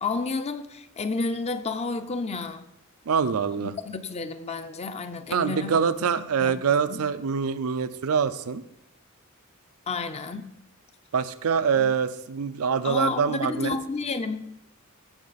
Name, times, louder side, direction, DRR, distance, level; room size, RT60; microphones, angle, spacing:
voice 1, 0.0-2.6 3.6-5.8 6.4-6.6 6.9-7.0 9.9-10.5 11.8-11.9 12.8-14.6, left 4 dB, 30° left, 10 dB, 0.5 m, -31 dB
voice 2, 3.1-3.7 5.3-8.6 11.1-13.7, right 6 dB, 85° right, 14 dB, 0.5 m, -25 dB
16.0 x 5.5 x 4.1 m, 0.81 s
head